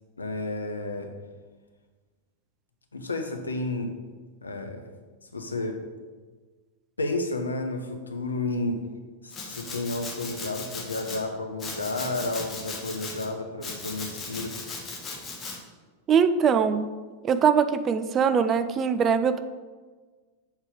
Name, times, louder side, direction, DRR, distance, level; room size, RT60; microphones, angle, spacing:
voice 1, 0.2-1.1 2.9-3.9 4.4-4.8 5.3-5.8 7.0-8.8 9.2-14.6, left 2 dB, 75° left, 5 dB, 0.7 m, -31 dB
Domestic sounds home sounds, 9.3-11.2 11.6-13.3 13.6-15.6, left 3 dB, 20° left, 1.3 m, -37 dB
voice 2, 16.1-16.9 17.2-19.4, right 6 dB, 25° right, 11 dB, 0.3 m, -22 dB
6.6 x 4.5 x 3.5 m, 1.4 s
figure-of-eight pair, 90°, 0 cm